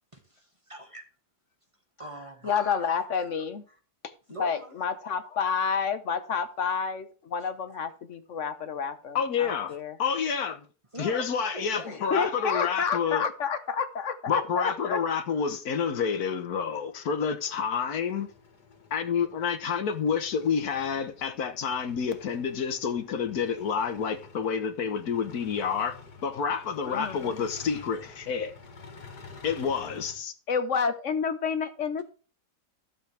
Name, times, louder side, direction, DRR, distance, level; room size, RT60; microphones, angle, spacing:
voice 1, 0.1-1.0 2.0-2.9 3.7-3.8 4.3-4.7 10.9-11.3 11.5-12.0 27.5-27.9, right 1 dB, 20° right, 1.8 m, -42 dB
voice 2, 2.4-3.6 4.4-10.0 11.8-15.0 26.9-27.4 30.5-32.0, left 6 dB, 55° left, 1.2 m, -29 dB
voice 3, 9.1-10.7 11.0-13.3 14.3-18.3 18.9-26.0 26.2-28.5 29.4-30.3, left 6 dB, 70° left, 1.6 m, -29 dB
sound 1, 15.6-30.2, left 4 dB, 85° left, 2.3 m, -50 dB
14.5 x 7.5 x 3.4 m
omnidirectional pair, 1.7 m